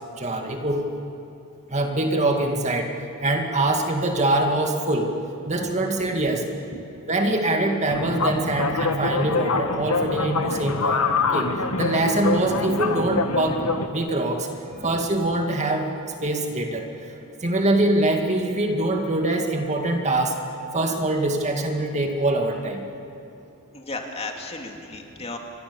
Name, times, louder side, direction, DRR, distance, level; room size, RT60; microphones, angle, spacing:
voice 1, 0.2-0.8 1.7-2.9 3.2-5.1 5.5-6.4 7.1-11.0 11.3-11.5 11.8-13.6 13.9-14.5 14.8-15.9 16.2-16.9 17.4-20.3 20.7-22.8, right 2 dB, 30° right, 3 dB, 2.2 m, -23 dB
sound 1, 7.9-13.9, left 4 dB, 75° left, 1.6 m, -25 dB
voice 2, 23.7-25.4, left 3 dB, 25° left, 2 dB, 2.5 m, -34 dB
29.5 x 23.5 x 7.1 m, 2.9 s
head